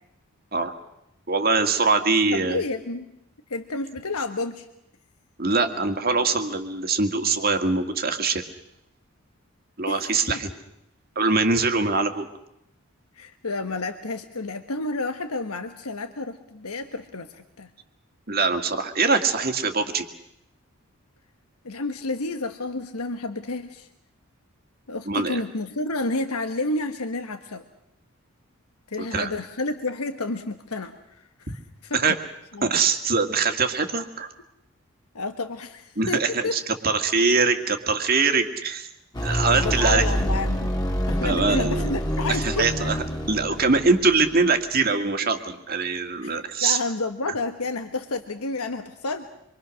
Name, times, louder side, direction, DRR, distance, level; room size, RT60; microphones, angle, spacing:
voice 1, 1.3-2.6 5.4-8.4 9.8-10.5 11.2-12.3 18.3-20.1 25.1-25.4 29.1-29.3 31.5-31.6 31.9-32.2 32.6-34.3 36.0-38.9 39.2-40.1 41.2-41.9 42.3-43.0 43.3-46.8, right 4 dB, 40° right, 6 dB, 1.9 m, -23 dB
voice 2, 2.3-3.1 3.5-4.7 9.9-10.4 13.2-17.7 21.6-23.9 24.9-27.6 28.9-32.0 32.5-32.7 35.1-36.6 39.5-40.7 41.1-42.7 46.2-49.3, left 3 dB, 85° left, 7 dB, 1.3 m, -30 dB
sound 1, 39.1-44.4, equal, 20° left, 2.3 m, -27 dB
27.0 x 24.0 x 6.4 m, 0.81 s
head